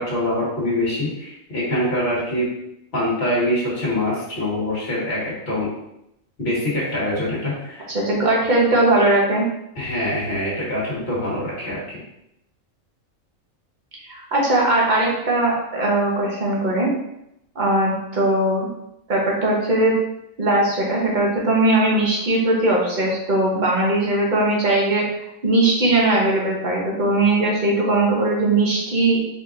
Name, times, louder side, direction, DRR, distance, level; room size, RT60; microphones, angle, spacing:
voice 1, 0.0-2.5 2.9-5.7 6.4-7.9 9.8-12.0, left 1 dB, 50° left, -6 dB, 1.8 m, -24 dB
voice 2, 7.9-9.4 14.1-16.9 17.5-18.7 19.1-19.9 20.4-29.2, right 2 dB, 40° right, -3 dB, 1.1 m, -19 dB
4.4 x 4.1 x 2.5 m, 0.82 s
omnidirectional pair, 1.4 m